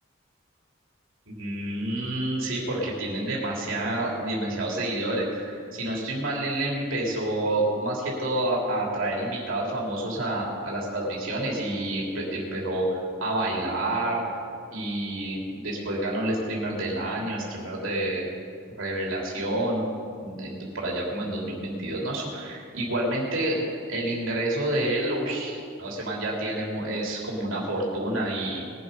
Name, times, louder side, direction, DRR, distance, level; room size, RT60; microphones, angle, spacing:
voice 1, 1.3-14.2 14.7-18.3 18.7-19.8 20.2-23.6 23.9-28.6, right 1 dB, 85° right, -3 dB, 3.1 m, -28 dB
21.0 x 7.8 x 5.3 m, 2.3 s
head